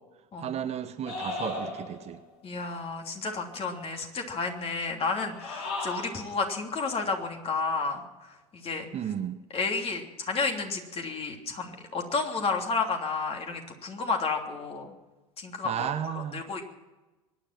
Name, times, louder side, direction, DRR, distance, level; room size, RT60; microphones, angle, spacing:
voice 1, 0.4-2.2 8.9-9.4 15.6-16.4, right 9 dB, 35° right, 9 dB, 1.2 m, -33 dB
sound 1, 1.1-2.2 5.3-6.3, left 3 dB, 60° left, 6.6 m, -35 dB
voice 2, 2.4-8.8 9.5-14.9 15.4-16.6, left 4 dB, 35° left, 3 dB, 3.2 m, -31 dB
23.5 x 10.0 x 6.0 m, 1.1 s
hypercardioid pair, 80°, 18 cm